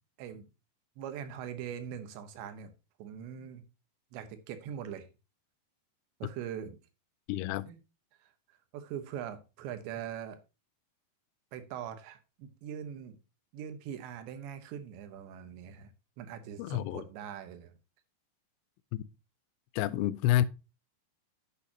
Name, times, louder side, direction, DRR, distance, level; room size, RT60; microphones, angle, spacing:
voice 1, 1.0-2.7 3.0-3.6 4.1-5.1 6.2-6.8 7.7-7.8 8.2-10.4 11.5-13.2 13.5-15.9 16.2-17.7, right 9 dB, 90° right, 3.5 m, -42 dB
voice 2, 7.3-7.7 16.6-17.0 18.9-19.0 19.7-20.5, left 13 dB, 90° left, 2.8 m, -29 dB
10.0 x 8.5 x 2.9 m
omnidirectional pair, 5.0 m